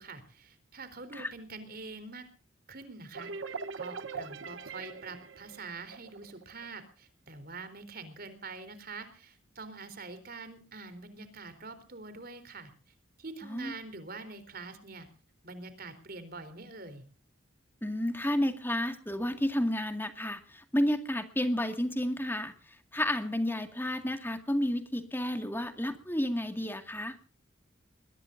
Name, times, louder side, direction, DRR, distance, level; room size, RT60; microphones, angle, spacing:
voice 1, 0.0-2.3 2.7-12.7 13.2-15.1 15.4-17.0, right 3 dB, 50° right, 11 dB, 3.9 m, -45 dB
sound 1, 3.1-6.7, right 5 dB, 85° right, 1.2 m, -41 dB
voice 2, 13.4-13.7 17.8-22.5 22.9-27.2, left 1 dB, 10° left, 7 dB, 2.0 m, -31 dB
22.0 x 21.0 x 2.7 m, 0.39 s
head